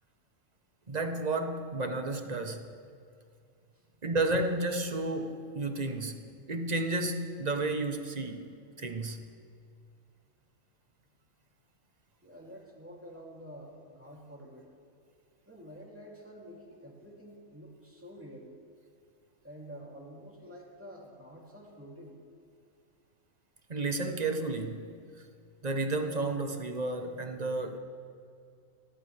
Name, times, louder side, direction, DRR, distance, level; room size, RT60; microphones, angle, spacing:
voice 1, 0.9-2.7 4.0-8.5 8.8-9.2 23.7-24.9 25.6-27.8, right 2 dB, 35° right, 5 dB, 1.0 m, -32 dB
voice 2, 12.2-14.7 15.4-18.5 19.4-22.2, equal, 10° right, -3 dB, 2.8 m, -48 dB
30.0 x 12.5 x 3.4 m, 2.3 s
omnidirectional pair, 1.5 m